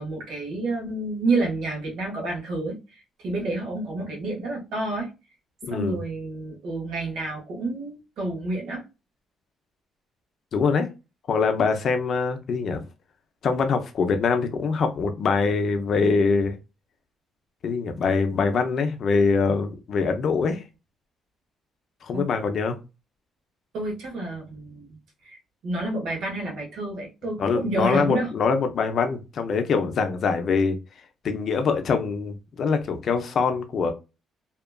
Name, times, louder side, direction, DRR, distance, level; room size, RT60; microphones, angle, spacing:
voice 1, 0.0-5.1 5.7-8.8 22.1-22.3 23.7-28.3, right 2 dB, 65° right, 1.1 m, -29 dB
voice 2, 5.6-6.0 10.5-10.9 11.3-12.8 13.4-16.5 17.6-20.6 22.0-22.8 27.4-30.8 31.2-33.9, left 5 dB, 45° left, 0.5 m, -23 dB
2.8 x 2.3 x 2.2 m
cardioid pair, 160°, 0 cm